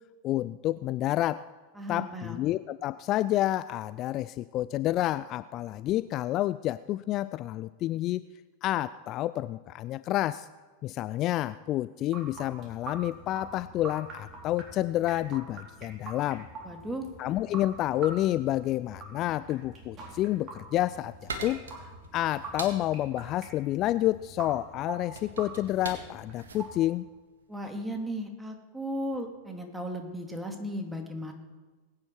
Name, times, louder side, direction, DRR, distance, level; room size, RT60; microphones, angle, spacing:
voice 1, 0.2-1.4 1.9-8.2 8.6-10.5 10.8-16.5 17.2-21.6 22.1-27.1, left 14 dB, 40° left, 16 dB, 0.3 m, -29 dB
voice 2, 1.8-2.4 16.6-17.1 27.5-31.3, equal, 5° right, 3 dB, 2.4 m, -36 dB
sound 1, 12.1-26.8, right 3 dB, 35° right, 3.9 m, -45 dB
sound 2, 20.4-27.8, right 3 dB, 75° right, 1.8 m, -43 dB
20.5 x 9.7 x 4.6 m, 1.3 s
figure-of-eight pair, 90°, 0 cm